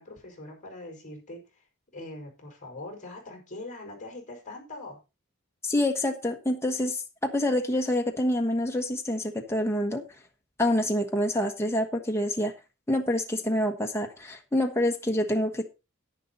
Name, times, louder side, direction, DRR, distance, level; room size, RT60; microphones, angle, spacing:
voice 1, 0.0-1.7 1.9-5.0, left 2 dB, 35° left, 1 dB, 5.3 m, -42 dB
voice 2, 5.6-10.0 10.6-12.5 12.9-15.6, left 1 dB, 10° left, 2 dB, 1.3 m, -27 dB
10.5 x 10.5 x 4.0 m, 0.28 s
head